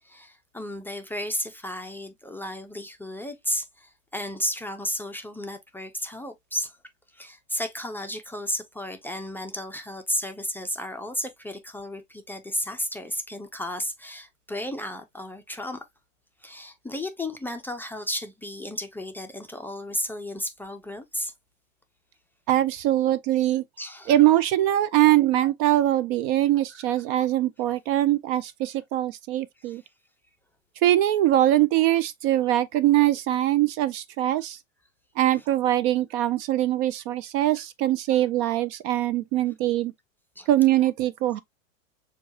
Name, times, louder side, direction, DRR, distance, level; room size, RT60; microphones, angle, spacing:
voice 1, 0.0-6.7 7.1-15.8 16.4-21.3 23.8-24.1 40.4-40.5, left 1 dB, 5° left, 0.5 m, -33 dB
voice 2, 22.5-23.6 24.1-29.8 30.8-34.6 35.2-39.9 40.5-41.4, right 13 dB, 45° right, 0.5 m, -22 dB
6.8 x 2.4 x 2.7 m
hypercardioid pair, 105°, 39 cm